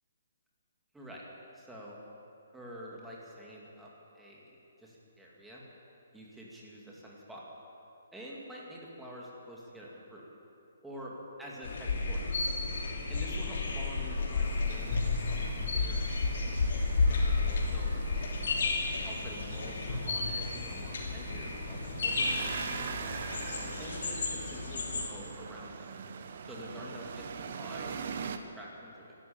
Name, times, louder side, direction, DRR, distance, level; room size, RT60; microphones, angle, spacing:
voice 1, 1.5-2.0 2.5-5.6 6.1-7.4 8.1-10.2 10.8-12.3 13.1-16.6 17.1-18.2 19.0-22.9 23.8-25.9 26.5-29.1, equal, 5° right, -5 dB, 2.3 m, -47 dB
sound 1, 11.6-25.1, left 3 dB, 60° left, 2.9 m, -32 dB
sound 2, 14.4-28.4, right 6 dB, 50° right, 1.0 m, -43 dB
13.5 x 12.0 x 8.7 m, 2.9 s
hypercardioid pair, 165°, 0 cm